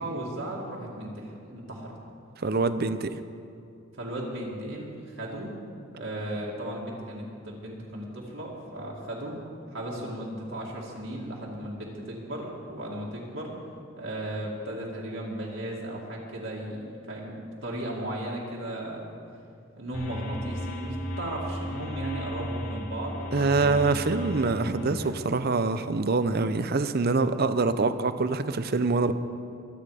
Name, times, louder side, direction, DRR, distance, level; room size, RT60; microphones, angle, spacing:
voice 1, 0.0-1.9 3.9-5.5 5.9-9.3 9.7-19.2 19.8-24.0 24.2-25.2, right 1 dB, 65° right, -4 dB, 2.3 m, -36 dB
voice 2, 2.4-3.2 23.3-29.1, right 3 dB, 45° right, 12 dB, 0.6 m, -25 dB
sound 1, 19.9-25.0, equal, 85° left, 2.9 m, -35 dB
23.5 x 8.8 x 5.0 m, 2.6 s
head